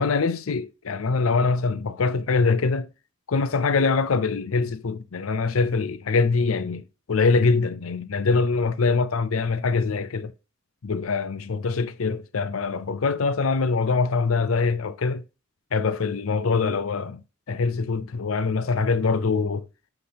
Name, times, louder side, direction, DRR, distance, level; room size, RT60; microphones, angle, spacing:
voice 1, 0.0-2.9 3.3-6.8 7.1-10.3 10.8-15.2 15.7-17.2 17.5-19.7, left 4 dB, 90° left, 0.6 m, -23 dB
8.6 x 5.8 x 2.8 m
head